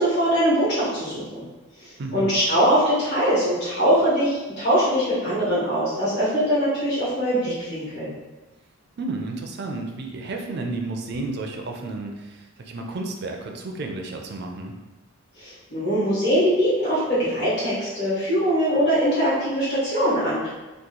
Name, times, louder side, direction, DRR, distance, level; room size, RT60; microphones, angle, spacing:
voice 1, 0.0-1.4 1.8-8.1 15.4-20.5, equal, 50° left, -11 dB, 1.2 m, -22 dB
voice 2, 9.0-14.7, right 2 dB, 45° right, 2 dB, 0.4 m, -32 dB
2.9 x 2.3 x 3.7 m, 1.1 s
head